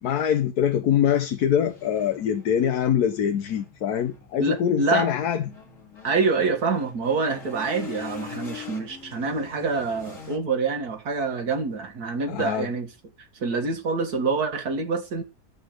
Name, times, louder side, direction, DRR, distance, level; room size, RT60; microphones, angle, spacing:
voice 1, 0.0-5.4 12.3-12.7, left 9 dB, 80° left, 1.4 m, -24 dB
sound 1, 1.4-10.4, left 8 dB, 60° left, 2.5 m, -43 dB
voice 2, 4.4-5.1 6.0-12.9 13.2-15.2, right 4 dB, 80° right, 2.2 m, -26 dB
13.0 x 5.4 x 7.8 m
omnidirectional pair, 1.6 m